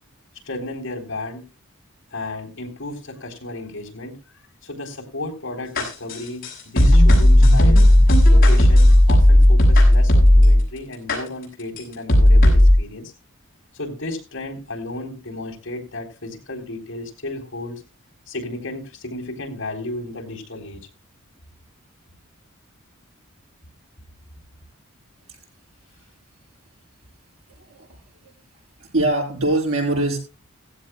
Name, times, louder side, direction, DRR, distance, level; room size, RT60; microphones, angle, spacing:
voice 1, 0.4-1.5 2.1-4.2 4.6-7.9 8.3-13.1 13.7-17.8 18.3-20.9, left 2 dB, 60° left, 1 dB, 3.7 m, -33 dB
sound 1, 5.8-10.6 11.1-11.2 11.8-11.9 12.1-12.7, left 1 dB, 40° left, 6.1 m, -12 dB
voice 2, 28.8-30.2, right 2 dB, 90° right, -1 dB, 7.3 m, -22 dB
16.5 x 15.5 x 2.3 m, 0.29 s
head